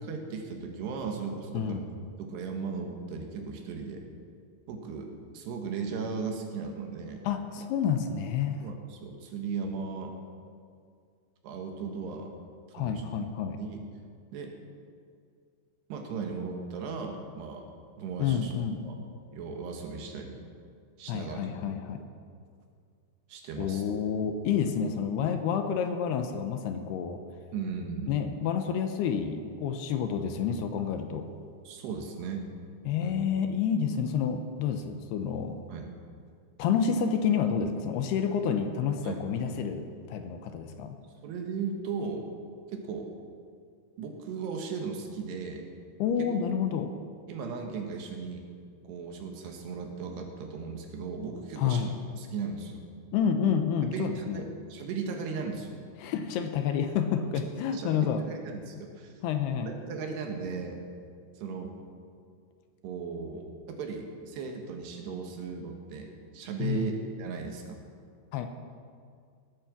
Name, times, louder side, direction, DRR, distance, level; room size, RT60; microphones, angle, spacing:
voice 1, 0.0-1.8 2.2-4.1 4.7-7.2 8.6-10.1 11.4-12.3 12.8-13.0 13.6-13.8 14.3-14.5 15.9-17.7 18.0-18.5 18.8-19.0 19.3-20.4 21.0-21.4 23.3-23.8 27.5-28.3 31.6-32.5 33.0-33.1 35.7-36.0 39.0-39.2 41.2-42.2 42.7-43.1 44.0-45.7 46.2-46.5 47.3-48.5 48.8-51.8 52.2-52.8 53.9-55.8 57.7-59.1 59.7-60.8 61.4-61.8 62.8-67.8, right 5 dB, 75° right, 3 dB, 3.5 m, -37 dB
voice 2, 1.5-1.9 7.2-8.6 12.7-13.6 18.2-18.9 21.1-22.0 23.6-27.2 28.1-31.3 32.9-35.6 36.6-41.0 46.0-46.9 51.6-51.9 53.1-54.4 56.0-58.2 59.2-59.8 66.6-66.9 68.3-68.5, left 7 dB, 75° left, 7 dB, 2.7 m, -29 dB
18.0 x 8.9 x 7.2 m, 2.2 s
omnidirectional pair, 5.0 m